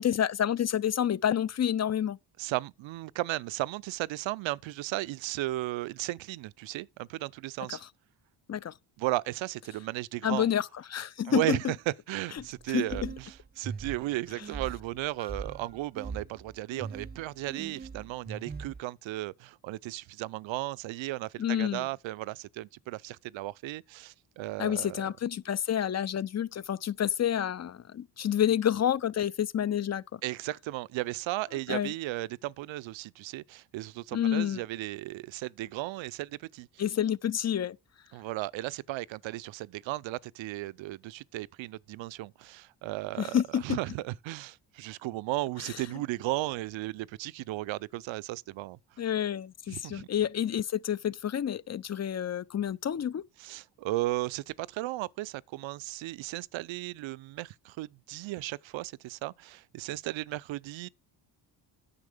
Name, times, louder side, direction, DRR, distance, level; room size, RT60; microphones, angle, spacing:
voice 1, 0.0-2.2 7.7-7.8 8.5-8.7 10.2-11.6 12.7-13.1 21.4-21.9 24.6-30.2 31.7-31.9 34.1-34.6 36.8-37.8 43.2-43.8 49.0-53.2, left 10 dB, 35° left, 0.5 m, -29 dB
voice 2, 2.4-7.8 9.0-10.5 11.3-25.1 30.2-36.7 38.1-48.8 49.7-50.1 53.4-60.9, right 17 dB, 70° right, 0.6 m, -35 dB
sound 1, 12.4-18.8, right 5 dB, 20° right, 0.7 m, -41 dB
9.8 x 6.4 x 5.0 m
supercardioid pair, 65°, 47 cm